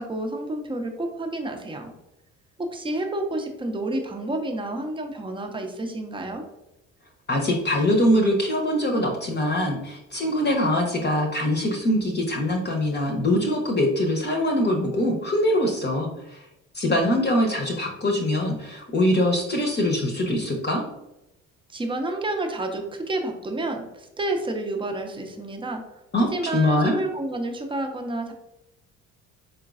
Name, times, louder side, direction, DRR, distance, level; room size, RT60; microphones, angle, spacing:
voice 1, 0.0-1.9 2.6-6.4 21.7-25.8 26.3-28.3, right 2 dB, 15° right, 4 dB, 0.7 m, -29 dB
voice 2, 7.3-16.4 16.7-20.8 26.1-27.0, left 1 dB, 25° left, 1 dB, 0.9 m, -23 dB
4.5 x 3.8 x 2.5 m, 0.90 s
figure-of-eight pair, 50°, 39 cm